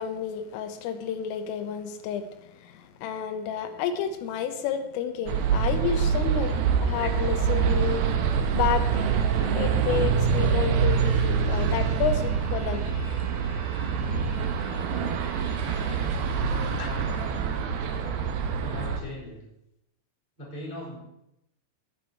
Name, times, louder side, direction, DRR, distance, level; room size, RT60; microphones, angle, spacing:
voice 1, 0.0-8.0 8.5-9.1 9.3-12.8 16.7-16.9, left 8 dB, 80° left, 8 dB, 3.5 m, -31 dB
sound 1, 5.3-19.0, right 6 dB, 80° right, 2.2 m, -25 dB
Bowed string instrument, 10.7-17.7, left 1 dB, 35° left, 6.5 m, -50 dB
voice 2, 16.4-17.1 18.6-19.4 20.4-21.0, left 1 dB, 10° left, -6 dB, 5.0 m, -39 dB
19.0 x 7.4 x 4.6 m, 0.84 s
omnidirectional pair, 6.0 m